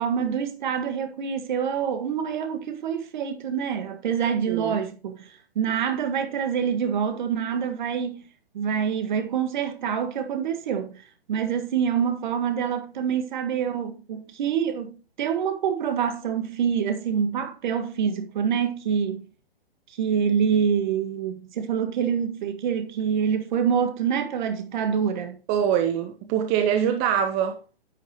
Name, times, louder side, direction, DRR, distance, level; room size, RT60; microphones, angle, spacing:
voice 1, 0.0-5.3 5.6-8.2 8.5-10.9 11.3-19.3 20.0-25.4, right 7 dB, 50° right, 1.7 m, -26 dB
voice 2, 4.5-4.8 25.5-27.6, right 9 dB, 25° right, 0.7 m, -23 dB
10.0 x 8.1 x 3.0 m
figure-of-eight pair, 125°, 30 cm